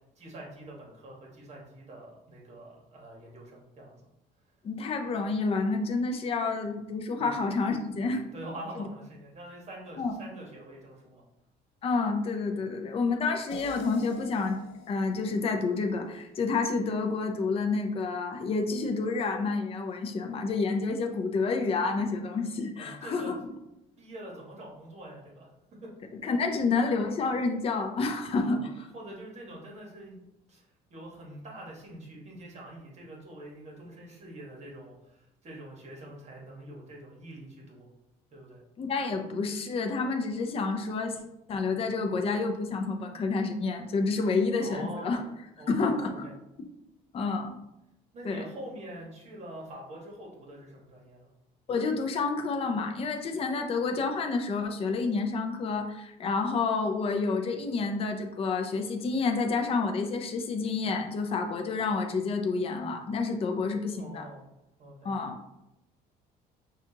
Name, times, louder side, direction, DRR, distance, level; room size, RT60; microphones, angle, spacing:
voice 1, 0.2-4.0 7.2-7.4 8.0-11.2 22.8-23.3 24.0-25.5 25.8-25.9 28.5-37.9 38.3-38.6 44.6-45.2 45.6-46.3 48.1-51.3 64.0-64.4 64.8-65.1, right 1 dB, 40° right, -2 dB, 1.3 m, -45 dB
voice 2, 4.6-8.2 8.8-8.9 10.0-10.1 11.8-14.6 14.9-23.3 26.2-28.9 38.8-41.2 41.5-45.2 45.7-46.3 47.1-47.6 48.2-48.4 51.7-64.3 65.0-65.4, left 4 dB, 35° left, 4 dB, 0.5 m, -29 dB
sound 1, 13.5-16.6, left 3 dB, 85° left, 0.7 m, -47 dB
5.7 x 2.4 x 2.8 m, 0.89 s
cardioid pair, 110°, 17 cm